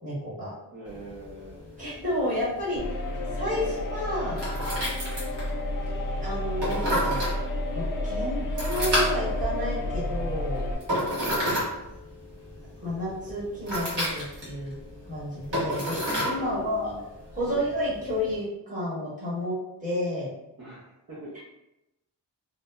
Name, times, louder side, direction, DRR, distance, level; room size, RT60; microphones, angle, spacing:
voice 1, 0.0-0.5 1.8-3.1 3.3-4.4 6.2-7.3 7.7-10.6 12.8-14.7 15.1-16.9 17.3-20.3 21.3-21.4, left 1 dB, 20° right, -9 dB, 1.0 m, -31 dB
voice 2, 0.7-1.6 3.6-3.8 11.2-11.7 16.4-17.0 17.5-17.6 20.6-21.4, right 2 dB, 40° right, -9 dB, 0.6 m, -42 dB
sound 1, 0.9-18.4, equal, 70° right, 1.1 m, -33 dB
sound 2, 2.8-10.8, left 1 dB, 50° left, 0.4 m, -30 dB
2.9 x 2.1 x 2.2 m, 0.91 s
wide cardioid pair, 180°, 42 cm